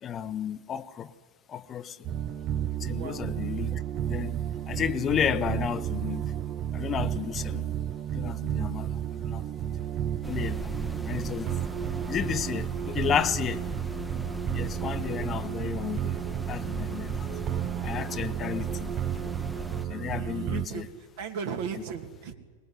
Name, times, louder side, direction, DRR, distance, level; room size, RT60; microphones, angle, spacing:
voice 1, 0.0-1.1 1.5-2.0 2.8-3.8 4.1-4.4 4.7-6.2 6.7-7.7 8.1-9.4 10.2-10.7 11.0-11.6 12.1-13.7 14.5-16.2 16.5-17.3 17.8-18.9 19.8-20.9, left 8 dB, 25° left, 0.9 m, -32 dB
sound 1, 2.0-20.7, right 10 dB, 35° right, 0.9 m, -32 dB
voice 2, 2.9-3.3 20.1-20.8 21.2-22.3, right 6 dB, 50° right, 2.5 m, -36 dB
sound 2, 10.2-19.9, equal, ahead, 1.1 m, -39 dB
23.0 x 19.5 x 9.7 m
figure-of-eight pair, 90°, 0 cm